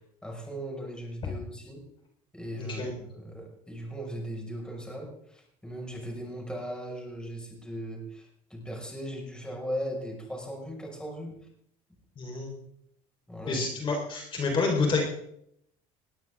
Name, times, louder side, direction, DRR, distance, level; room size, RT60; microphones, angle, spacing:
voice 1, 0.2-1.8 2.3-2.8 3.1-11.4 13.3-13.6, equal, 5° left, 0 dB, 5.8 m, -38 dB
voice 2, 2.6-2.9 12.2-12.5 13.5-15.0, left 4 dB, 35° left, 0 dB, 4.5 m, -28 dB
20.0 x 18.0 x 3.8 m, 0.72 s
cardioid pair, 115°, 15 cm